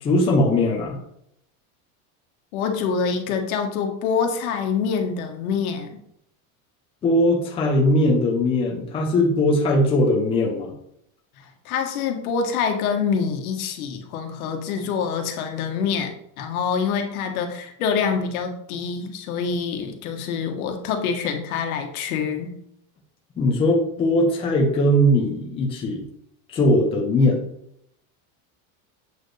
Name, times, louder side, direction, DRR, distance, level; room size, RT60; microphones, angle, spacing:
voice 1, 0.0-1.0 7.0-10.7 23.4-26.0 26.5-27.4, left 1 dB, 15° left, -1 dB, 0.7 m, -20 dB
voice 2, 2.5-6.0 11.6-22.5, left 6 dB, 85° left, 4 dB, 1.4 m, -26 dB
7.9 x 4.5 x 3.3 m, 0.74 s
supercardioid pair, 180°, 42 cm